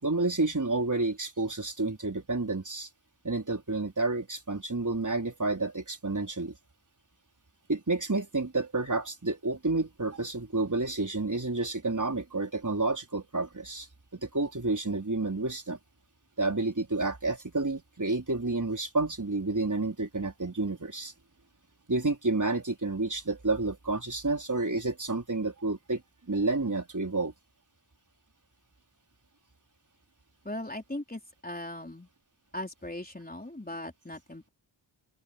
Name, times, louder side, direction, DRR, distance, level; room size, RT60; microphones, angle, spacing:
voice 1, 0.0-2.9 3.2-6.6 7.7-13.9 14.2-15.8 16.4-21.1 21.9-26.0 26.3-27.3, right 2 dB, 40° right, 4.5 m, -30 dB
voice 2, 30.4-32.1 32.5-34.5, left 1 dB, 20° left, 4.1 m, -39 dB
open air
wide cardioid pair, 60°, 46 cm